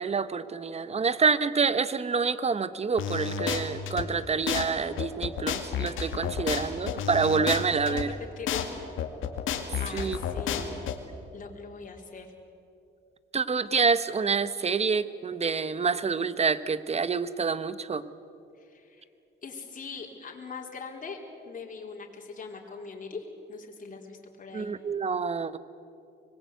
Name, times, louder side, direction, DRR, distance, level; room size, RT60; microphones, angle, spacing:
voice 1, 0.0-8.1 9.9-10.2 10.5-10.7 13.3-18.0 24.5-25.6, right 5 dB, 30° right, 14 dB, 1.1 m, -27 dB
sound 1, 3.0-4.0 4.5-4.6 5.0-8.0 8.5-8.6 9.0-10.9, left 8 dB, 85° left, 2.2 m, -30 dB
voice 2, 7.9-8.7 9.8-10.8 11.3-12.3 18.6-19.1 19.4-21.2 21.4-24.7, left 4 dB, 40° left, 0 dB, 4.1 m, -41 dB
25.0 x 21.0 x 8.3 m, 2.7 s
cardioid pair, 90°, 20 cm